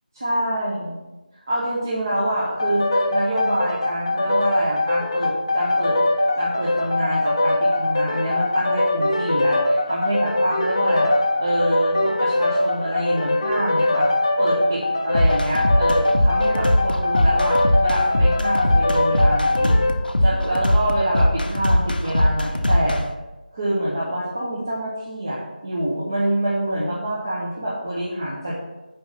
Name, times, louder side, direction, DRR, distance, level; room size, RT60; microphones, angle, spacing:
voice 1, 0.1-1.0 1.5-6.0 6.4-11.1 11.4-14.1 14.4-19.8 20.2-23.0 23.5-28.6, right 1 dB, 20° right, -8 dB, 1.0 m, -26 dB
sound 1, 2.6-20.0, left 2 dB, 30° left, 0.6 m, -22 dB
sound 2, 15.1-23.0, left 1 dB, 75° left, 0.8 m, -20 dB
5.7 x 5.1 x 5.6 m, 1.1 s
figure-of-eight pair, 175°, 5 cm